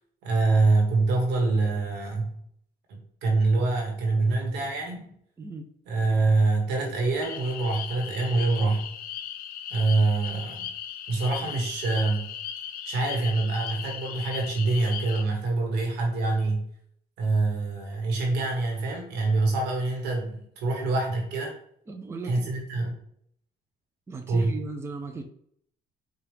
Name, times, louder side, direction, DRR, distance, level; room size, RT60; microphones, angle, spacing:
voice 1, 0.2-2.4 2.9-5.1 5.9-8.9 9.7-10.7 11.1-12.3 12.8-16.6 17.2-21.6 22.2-23.0 24.3-24.5, right 3 dB, 85° right, 1 dB, 1.3 m, -25 dB
voice 2, 5.4-5.7 21.9-22.5 24.1-25.2, right 4 dB, 15° right, 4 dB, 0.4 m, -37 dB
sound 1, 7.2-15.2, left 9 dB, 60° left, 0.4 m, -37 dB
4.7 x 2.4 x 3.2 m, 0.67 s
cardioid pair, 110°, 17 cm